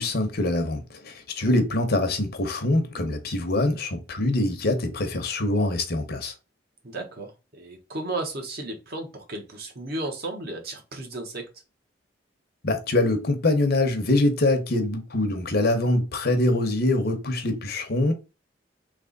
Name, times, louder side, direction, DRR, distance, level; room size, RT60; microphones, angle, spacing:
voice 1, 0.0-6.3 12.6-18.1, left 2 dB, 55° left, 0.9 m, -24 dB
voice 2, 6.8-11.5, right 2 dB, 55° right, 1.2 m, -34 dB
3.4 x 3.0 x 3.9 m
head